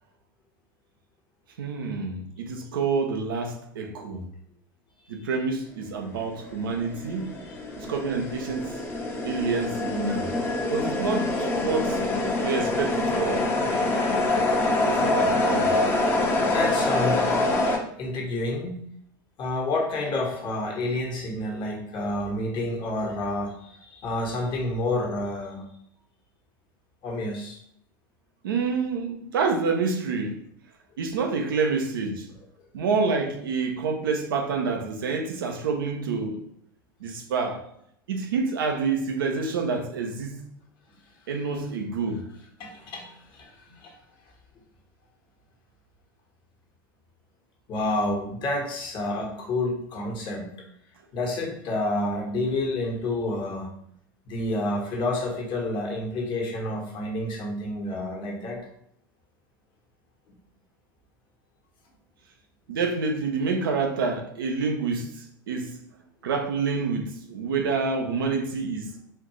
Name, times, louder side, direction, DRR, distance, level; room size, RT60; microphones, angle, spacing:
voice 1, 1.6-4.3 5.1-7.3 7.8-8.8 9.2-10.3 10.7-12.0 12.4-13.5 14.9-15.8 28.4-30.4 31.0-32.3 32.7-36.4 37.0-37.6 38.1-40.3 41.3-42.3 62.7-65.1 65.5-65.8 66.2-68.9, right 4 dB, 80° right, 0.7 m, -27 dB
sound 1, 6.2-17.8, left 2 dB, 20° left, 0.8 m, -25 dB
voice 2, 16.3-17.3 18.0-18.8 19.4-25.6 27.0-27.6 42.6-43.5 43.8-43.9 47.7-50.5 51.1-53.7 54.3-58.6, left 2 dB, 45° left, 1.3 m, -29 dB
4.3 x 2.6 x 3.1 m
hypercardioid pair, 90°, 11 cm